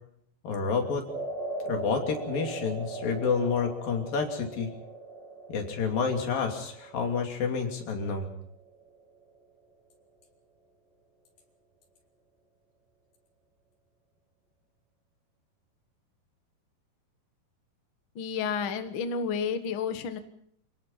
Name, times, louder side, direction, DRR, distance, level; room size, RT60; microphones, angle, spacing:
voice 1, 0.4-1.0 1.7-4.7 5.5-8.3, left 5 dB, 85° left, 3 dB, 4.7 m, -29 dB
sound 1, 1.1-9.4, right 2 dB, ahead, 5.5 m, -40 dB
voice 2, 18.1-20.2, left 6 dB, 50° left, 9 dB, 1.7 m, -31 dB
27.5 x 18.0 x 5.7 m, 0.67 s
omnidirectional pair, 3.9 m